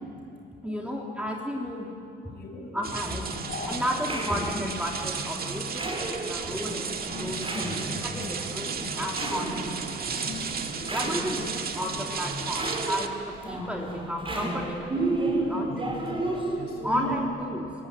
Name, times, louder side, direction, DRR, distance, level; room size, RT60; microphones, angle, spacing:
voice 1, 0.6-2.0 2.7-3.3 3.6-9.6 10.9-15.7 16.8-17.9, equal, 5° right, 0 dB, 3.3 m, -33 dB
voice 2, 2.2-2.8 3.5-3.8 7.1-9.3 9.9-11.0 13.5-13.6 15.0-17.2, left 4 dB, 50° left, 1 dB, 6.6 m, -40 dB
sound 1, 2.8-13.1, right 6 dB, 50° right, 1.8 m, -34 dB
sound 2, 3.2-17.2, right 2 dB, 25° right, 4.7 m, -33 dB
28.0 x 16.5 x 9.8 m, 2.5 s
cardioid pair, 90°, 20 cm